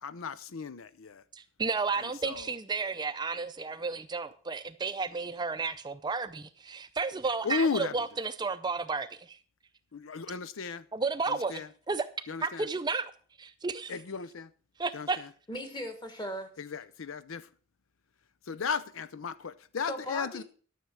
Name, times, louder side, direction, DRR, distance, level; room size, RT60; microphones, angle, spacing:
voice 1, 0.0-1.2 2.0-2.5 7.4-7.9 9.9-10.9 11.3-11.7 12.3-12.7 13.9-14.5 14.9-15.3 16.6-17.5 18.5-20.4, left 5 dB, 85° left, 0.6 m, -35 dB
voice 2, 1.3-9.4 10.9-12.1 12.4-13.1 13.4-13.9 14.8-15.2, right 4 dB, 20° right, 0.5 m, -32 dB
voice 3, 15.5-16.5 19.9-20.4, equal, 20° left, 1.6 m, -37 dB
13.0 x 6.7 x 6.1 m
head